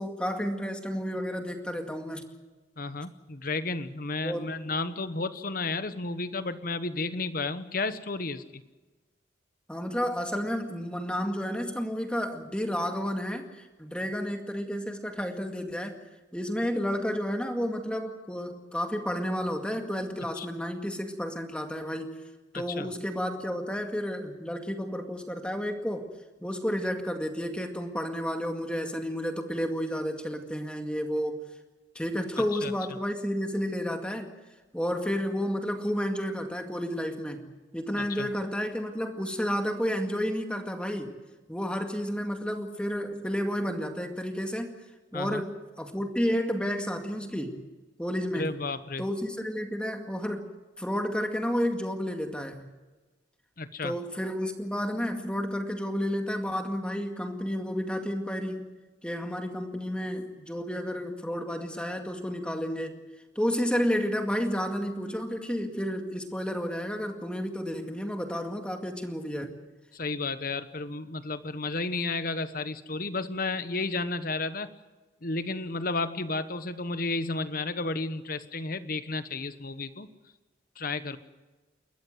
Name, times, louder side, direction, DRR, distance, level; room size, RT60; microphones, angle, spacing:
voice 1, 0.0-2.3 4.2-4.5 9.7-16.0 16.3-22.1 22.5-26.1 26.4-31.4 32.0-34.3 34.7-37.5 37.7-41.1 41.5-44.7 45.1-47.6 48.0-48.5 49.0-50.5 50.8-52.6 53.8-58.7 59.0-63.0 63.4-69.5, equal, 5° left, 4 dB, 2.1 m, -31 dB
voice 2, 2.8-8.6 20.4-20.5 22.5-22.9 32.5-32.7 38.0-38.3 45.1-45.4 48.3-49.0 53.6-53.9 69.9-74.7 75.2-80.1 80.8-81.2, left 3 dB, 45° left, 12 dB, 1.1 m, -32 dB
29.5 x 14.0 x 7.9 m, 1.2 s
head